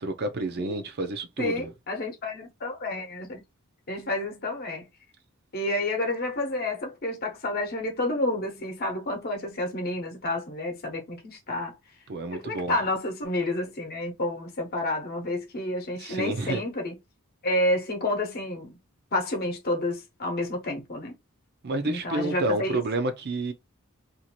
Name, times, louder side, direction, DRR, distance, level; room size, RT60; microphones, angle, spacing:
voice 1, 0.0-1.7 12.1-12.8 16.0-16.6 21.6-23.5, right 2 dB, 45° right, 0.5 m, -29 dB
voice 2, 1.4-3.4 3.9-4.9 5.5-11.8 12.3-17.0 17.4-18.8 19.1-21.1 21.8-22.8, left 1 dB, 45° left, 0.9 m, -30 dB
2.6 x 2.5 x 2.8 m
head